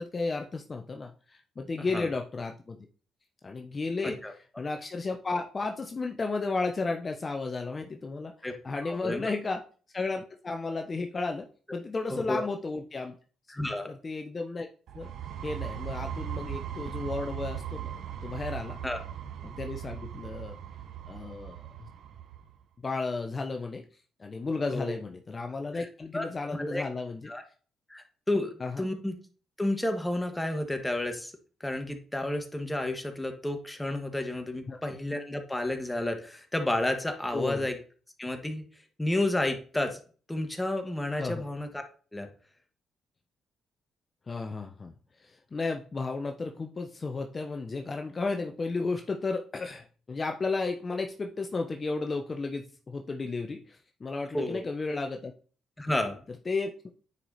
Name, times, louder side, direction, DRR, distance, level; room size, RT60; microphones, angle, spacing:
voice 1, 0.0-2.9 3.4-4.2 4.6-8.3 8.6-9.6 9.9-13.2 13.9-14.7 14.9-15.1 15.4-17.9 18.2-18.8 19.4-20.6 21.1-21.9 22.8-23.8 24.2-27.3 28.6-28.9 34.7-35.0 37.3-37.7 41.2-41.4 44.3-44.9 45.2-55.3 56.5-56.7, left 3 dB, 30° left, 4 dB, 0.8 m, -33 dB
voice 2, 8.8-9.3 12.3-12.4 13.5-13.9 18.8-19.0 24.7-25.0 25.7-25.9 26.1-26.3 26.5-26.8 27.3-27.4 27.9-29.1 29.6-31.3 31.6-37.8 38.2-38.7 39.0-40.0 40.3-41.8 42.1-42.3 54.3-54.6 55.8-56.3, left 1 dB, 10° left, 5 dB, 1.6 m, -31 dB
sound 1, 14.9-22.5, right 10 dB, 70° right, 0.8 m, -38 dB
9.7 x 4.8 x 4.1 m, 0.40 s
cardioid pair, 90°, 0 cm